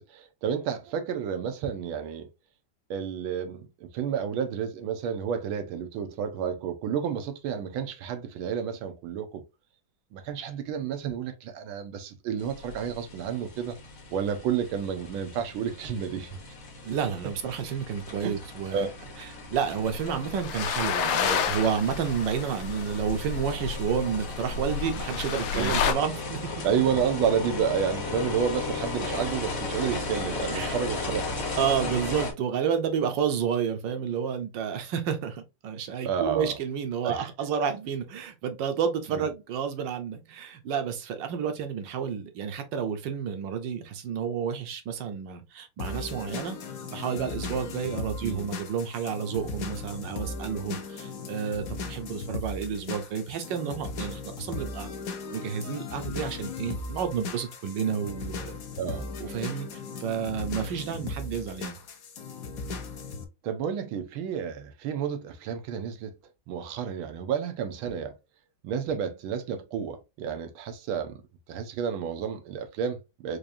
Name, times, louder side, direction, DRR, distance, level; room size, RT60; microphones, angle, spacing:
voice 1, 0.0-2.3 2.9-9.4 10.1-13.8 14.1-16.4 18.2-18.4 18.7-18.9 25.5-25.8 26.6-31.5 36.0-36.5 37.0-37.3 39.1-39.2 48.2-48.5 58.8-59.1 63.4-66.1 66.5-68.1 68.6-71.2 71.5-73.4, right 8 dB, 85° right, 1.5 m, -30 dB
sound 1, 12.4-32.3, left 3 dB, 40° left, 1.0 m, -36 dB
voice 2, 16.8-18.9 19.2-26.4 30.5-30.8 31.6-46.6 46.9-54.9 55.3-58.5 59.2-61.8, right 7 dB, 70° right, 1.3 m, -30 dB
sound 2, 19.9-25.9, left 7 dB, 90° left, 1.5 m, -30 dB
sound 3, 45.8-63.2, left 4 dB, 65° left, 0.9 m, -37 dB
4.8 x 2.5 x 2.6 m
omnidirectional pair, 2.2 m